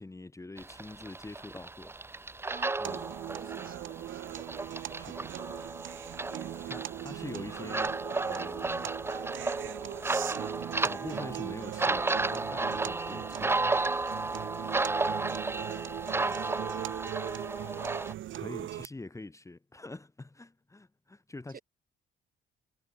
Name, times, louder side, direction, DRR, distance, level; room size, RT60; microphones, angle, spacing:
voice 1, 0.0-2.0 2.8-3.1 4.9-5.3 6.7-9.0 10.7-13.7 18.3-21.6, left 2 dB, 15° left, 1.7 m, -45 dB
sound 1, 0.6-18.1, right 3 dB, 10° right, 0.4 m, -33 dB
voice 2, 2.5-4.4 16.2-16.9 21.5-21.6, right 7 dB, 45° right, 4.0 m, -51 dB
sound 2, 2.8-18.9, right 13 dB, 75° right, 1.7 m, -40 dB
cardioid pair, 90°, 20 cm